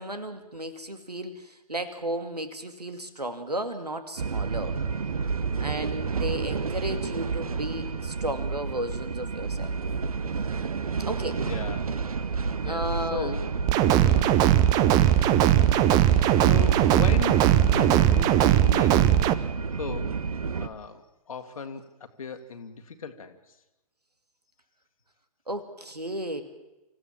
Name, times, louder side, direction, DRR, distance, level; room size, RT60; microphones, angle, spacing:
voice 1, 0.0-4.8 5.6-9.7 11.1-11.4 12.6-13.4 13.9-14.3 25.5-26.4, right 1 dB, 85° right, 9 dB, 2.4 m, -34 dB
sound 1, 4.2-20.7, right 5 dB, 65° right, 1.1 m, -30 dB
voice 2, 11.4-11.9 12.6-13.5 14.1-14.4 15.9-19.0 19.7-20.2 20.6-23.4, left 5 dB, 60° left, 7 dB, 1.9 m, -37 dB
sound 2, 13.7-19.3, right 12 dB, 20° right, 0.7 m, -20 dB
26.0 x 15.5 x 7.2 m, 0.98 s
figure-of-eight pair, 120°, 20 cm